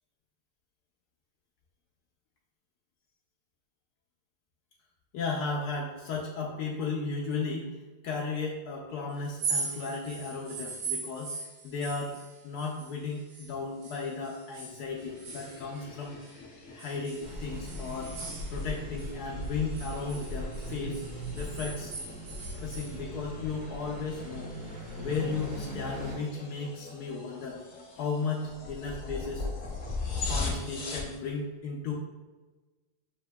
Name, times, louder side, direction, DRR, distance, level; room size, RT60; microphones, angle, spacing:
voice 1, 5.1-7.8 8.0-12.2 12.4-16.2 16.7-18.1 18.5-21.0 21.4-21.9 22.6-24.5 25.0-27.6 28.0-29.5 30.2-31.9, left 4 dB, 85° left, -2 dB, 0.8 m, -35 dB
sound 1, 9.2-13.5 13.8-16.3 16.8-19.1 19.4-22.9, right 4 dB, 90° right, 1.7 m, -40 dB
sound 2, 14.9-31.2, left 3 dB, 60° left, 0.8 m, -41 dB
sound 3, 17.2-26.1, equal, 50° right, 1.1 m, -39 dB
7.0 x 2.7 x 2.2 m, 1.2 s
omnidirectional pair, 2.3 m